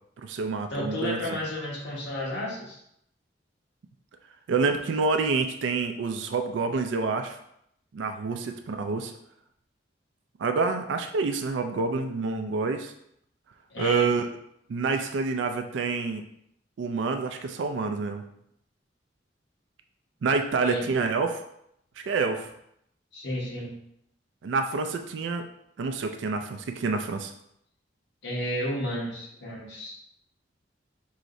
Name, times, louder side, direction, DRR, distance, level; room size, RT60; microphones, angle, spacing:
voice 1, 0.2-1.2 4.5-7.4 7.9-9.1 10.4-12.9 13.8-14.3 14.7-16.2 16.8-18.2 20.2-21.4 22.0-22.5 24.4-25.5 25.8-27.3, right 4 dB, 90° right, 7 dB, 0.4 m, -27 dB
voice 2, 0.7-2.8 8.3-8.4 13.7-14.1 20.6-20.9 23.1-23.8 28.2-29.9, left 1 dB, 75° left, -4 dB, 1.2 m, -32 dB
4.7 x 3.1 x 2.6 m, 0.74 s
head